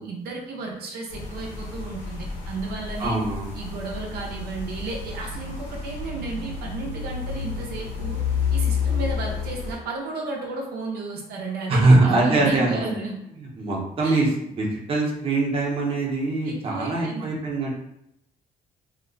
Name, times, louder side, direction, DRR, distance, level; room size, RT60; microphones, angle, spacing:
voice 1, 0.0-3.2 3.5-8.2 8.5-13.2 14.0-14.3 16.4-17.3, right 3 dB, 85° right, -1 dB, 0.7 m, -33 dB
sound 1, 1.1-9.7, left 6 dB, 85° left, 1.4 m, -30 dB
voice 2, 3.0-3.5 11.7-12.8 13.4-14.3 14.6-17.7, right 2 dB, 35° right, -3 dB, 0.8 m, -22 dB
2.9 x 2.1 x 3.9 m, 0.80 s
cardioid pair, 125°, 16 cm